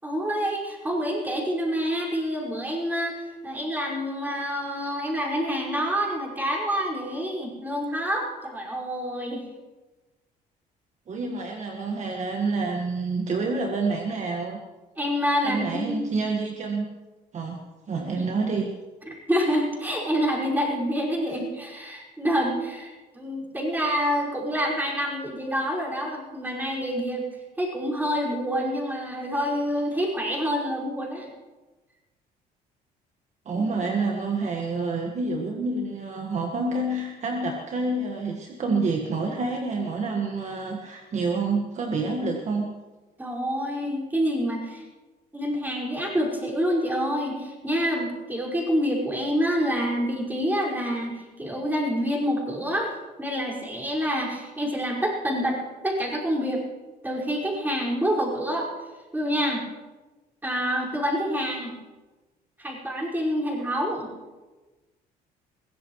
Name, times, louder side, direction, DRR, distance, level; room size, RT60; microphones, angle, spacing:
voice 1, 0.0-9.4 15.0-16.1 18.1-18.2 19.1-27.2 27.6-31.3 33.5-33.6 43.2-44.8 45.3-52.9 53.2-55.6 55.8-56.6 57.0-58.7 59.1-59.6 60.4-61.7 62.6-64.1, equal, 10° right, -3 dB, 5.4 m, -27 dB
voice 2, 11.1-14.6 15.4-16.9 17.3-17.6 17.9-18.7 33.4-42.7, right 3 dB, 45° right, 1 dB, 1.7 m, -28 dB
22.0 x 16.5 x 3.2 m, 1.2 s
cardioid pair, 110°, 17 cm